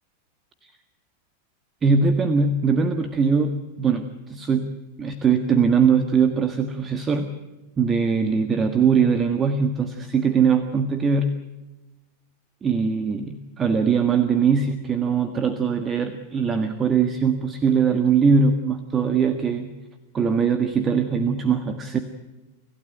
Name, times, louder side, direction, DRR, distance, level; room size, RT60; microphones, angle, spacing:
voice 1, 1.8-7.3 7.8-11.3 12.6-19.7 20.1-22.0, right 5 dB, 20° right, 8 dB, 1.6 m, -21 dB
26.5 x 16.0 x 9.1 m, 1.1 s
figure-of-eight pair, 90°, 0 cm